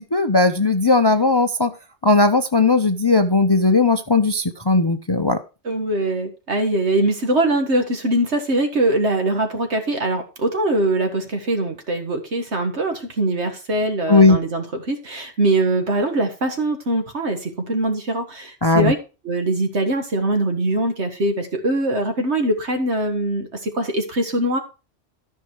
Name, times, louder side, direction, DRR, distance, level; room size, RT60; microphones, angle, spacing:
voice 1, 0.1-1.7 2.0-5.4 14.1-14.4 18.6-18.9, left 3 dB, 25° left, 9 dB, 0.6 m, -17 dB
voice 2, 5.6-19.0 19.2-24.6, right 1 dB, 65° right, 6 dB, 2.0 m, -22 dB
13.5 x 5.6 x 4.5 m, 0.31 s
omnidirectional pair, 1.2 m